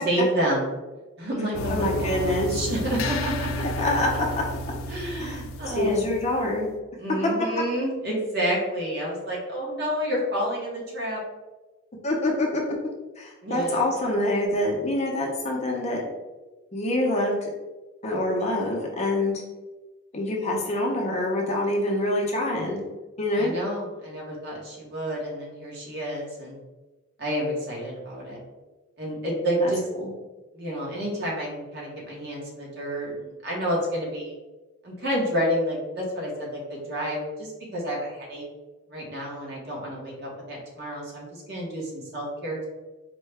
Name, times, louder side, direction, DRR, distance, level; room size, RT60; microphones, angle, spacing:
voice 1, 0.0-0.7 1.2-3.6 4.9-6.0 7.0-11.2 13.4-13.9 23.3-26.6 27.2-28.4 29.0-29.8 30.5-34.3 34.8-38.4 38.9-42.6, equal, 50° right, -3 dB, 1.1 m, -29 dB
sound 1, 1.5-6.7, left 1 dB, 80° left, 0.4 m, -32 dB
voice 2, 1.7-2.6 3.8-4.4 5.2-6.7 12.0-12.6 13.2-16.1 16.7-17.5 18.0-19.4 20.1-22.8 23.2-23.5 29.6-29.7 30.0-30.1, left 1 dB, 30° left, -2 dB, 0.6 m, -26 dB
4.4 x 2.2 x 3.3 m, 1.2 s
head